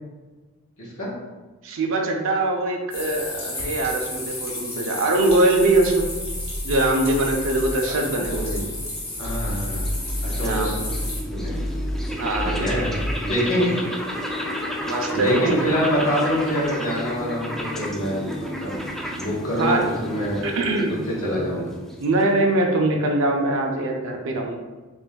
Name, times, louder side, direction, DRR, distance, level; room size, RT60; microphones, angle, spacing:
voice 1, 0.8-1.1 7.9-8.6 9.2-9.9 10.3-10.9 11.2-11.6 12.4-12.9 13.2-13.7 15.1-18.8 19.2-20.4 20.9-21.7, equal, 70° left, -5 dB, 1.4 m, -25 dB
voice 2, 1.6-6.1 6.6-8.5 10.4-10.8 12.2-12.6 13.7-13.8 14.9-15.8 19.6-19.9 20.4-21.0 21.3-21.4 22.0-24.6, right 2 dB, 65° right, 1 dB, 0.5 m, -22 dB
sound 1, 2.9-11.2, left 2 dB, 30° left, 1.4 m, -33 dB
sound 2, 5.2-7.8 8.2-8.7 9.1-13.4, equal, 55° left, 0.9 m, -31 dB
sound 3, 9.0-22.5, equal, ahead, 0.4 m, -32 dB
6.8 x 2.6 x 2.2 m, 1.3 s
head